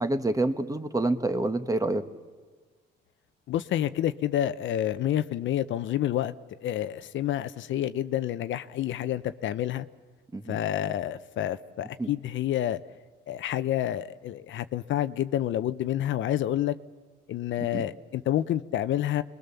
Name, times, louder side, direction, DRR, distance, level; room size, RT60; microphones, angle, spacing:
voice 1, 0.0-2.0 10.3-10.6 12.0-12.1 17.7-17.8, right 2 dB, 15° right, 9 dB, 1.4 m, -27 dB
voice 2, 3.5-6.3 6.6-9.9 10.5-12.8 13.3-16.8 17.3-19.2, left 12 dB, 75° left, 12 dB, 0.8 m, -28 dB
27.0 x 21.0 x 7.0 m, 1.4 s
cardioid pair, 90°, 20 cm